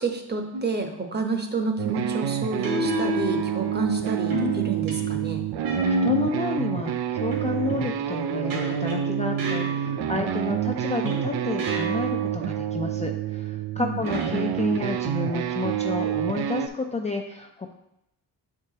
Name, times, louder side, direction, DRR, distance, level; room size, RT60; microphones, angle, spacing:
voice 1, 0.0-5.4 13.8-14.0, right 4 dB, 25° right, 4 dB, 0.8 m, -29 dB
sound 1, 0.5-0.9 2.6-3.9 4.3-6.5 7.3-10.3 11.1-12.3 14.0-14.9, equal, 60° right, 1.4 m, -31 dB
sound 2, 1.8-16.7, right 10 dB, 80° right, 0.5 m, -28 dB
voice 2, 6.0-17.7, left 3 dB, 20° left, 2 dB, 0.4 m, -30 dB
7.7 x 4.7 x 2.8 m, 0.82 s
cardioid pair, 130°, 38 cm